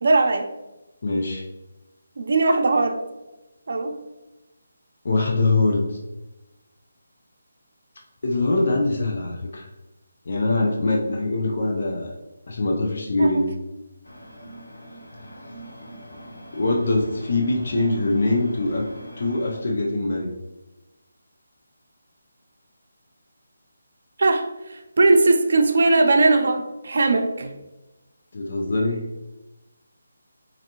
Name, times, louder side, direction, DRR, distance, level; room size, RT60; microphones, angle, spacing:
voice 1, 0.0-0.5 2.2-3.0 3.7-4.0 13.2-13.4 24.2-27.6, right 3 dB, 60° right, 5 dB, 0.5 m, -19 dB
voice 2, 1.0-1.4 5.0-6.0 8.2-9.7 10.3-12.1 12.5-13.5 16.5-18.9 19.2-20.3 28.3-29.1, left 2 dB, 55° left, 0 dB, 0.6 m, -23 dB
sound 1, 14.0-19.6, equal, 90° left, 0.8 m, -42 dB
4.2 x 2.6 x 2.9 m, 1.0 s
figure-of-eight pair, 165°, 0 cm